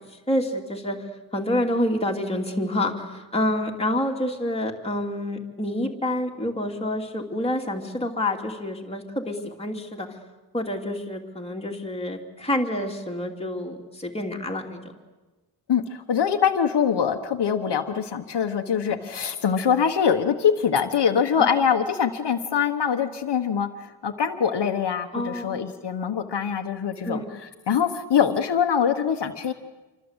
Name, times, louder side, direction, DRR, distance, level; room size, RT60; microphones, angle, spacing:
voice 1, 0.3-1.0 1.3-10.1 10.5-14.8 18.9-19.0 21.4-21.5 25.1-25.8 27.0-27.3, left 1 dB, 15° left, 0 dB, 2.7 m, -28 dB
voice 2, 15.7-23.7 24.0-29.5, left 7 dB, 65° left, 5 dB, 1.3 m, -23 dB
27.5 x 25.0 x 8.1 m, 1.2 s
wide cardioid pair, 175°, 45 cm